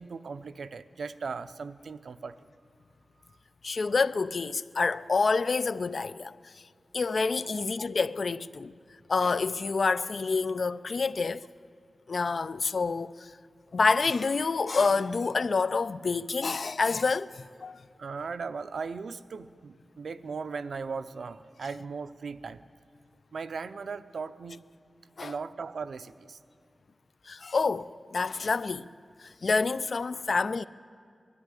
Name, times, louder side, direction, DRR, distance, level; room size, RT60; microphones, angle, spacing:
voice 1, 0.0-2.5 7.4-7.6 18.0-22.6 23.3-24.6 25.2-26.4, right 5 dB, 85° right, 0.7 m, -38 dB
voice 2, 3.6-6.5 6.9-8.7 9.1-11.5 12.1-13.3 13.7-17.8 25.2-25.3 27.3-28.9 29.2-30.6, left 4 dB, 60° left, 0.5 m, -28 dB
21.0 x 13.5 x 10.0 m
wide cardioid pair, 115°, 0 cm